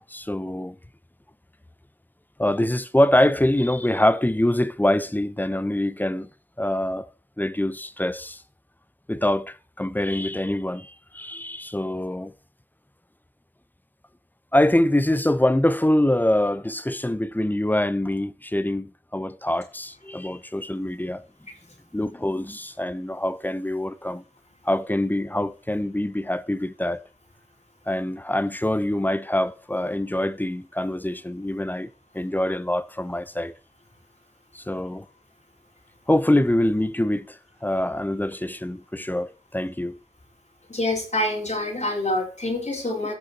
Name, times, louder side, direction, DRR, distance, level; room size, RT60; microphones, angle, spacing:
voice 1, 0.1-0.8 2.4-6.3 6.6-7.1 7.4-8.4 9.1-12.3 14.5-21.2 21.9-24.2 24.6-27.0 27.9-33.5 34.5-35.1 36.1-40.0, left 1 dB, 10° left, 0.7 m, -24 dB
voice 2, 40.7-43.1, left 1 dB, 50° left, 3.9 m, -26 dB
15.5 x 6.3 x 2.9 m
wide cardioid pair, 55°, 15 cm